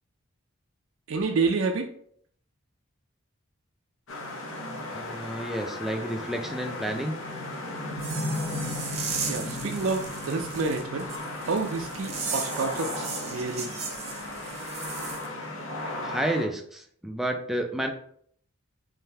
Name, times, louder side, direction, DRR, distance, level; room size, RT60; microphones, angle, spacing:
voice 1, 1.1-1.9 9.3-11.1 11.4-13.7, right 4 dB, 70° right, 4 dB, 0.4 m, -29 dB
sound 1, 4.1-16.5, left 1 dB, 65° left, 0.8 m, -35 dB
voice 2, 4.9-7.2 16.0-17.9, right 1 dB, ahead, 3 dB, 0.3 m, -30 dB
sound 2, 8.0-15.3, right 5 dB, 30° right, 0.7 m, -36 dB
3.7 x 3.2 x 2.7 m, 0.62 s
head